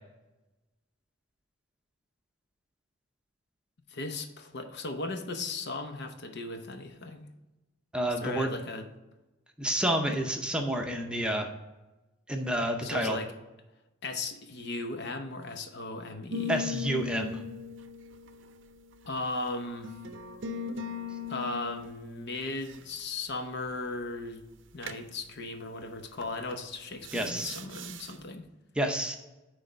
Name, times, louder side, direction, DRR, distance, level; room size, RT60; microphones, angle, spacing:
voice 1, 3.9-7.3 8.2-8.9 12.8-13.3 14.0-16.6 19.1-19.9 21.3-24.4 24.7-28.5, left 2 dB, 60° left, 6 dB, 0.8 m, -37 dB
voice 2, 7.9-8.5 9.6-11.5 12.3-13.2 16.5-17.4 27.1-27.5 28.7-29.2, right 1 dB, 5° right, 2 dB, 0.7 m, -29 dB
sound 1, 16.3-19.1 19.8-21.9 24.8-25.1 26.2-26.5 27.0-28.1, left 5 dB, 65° right, 0.6 m, -38 dB
9.4 x 3.4 x 5.0 m, 1.1 s
head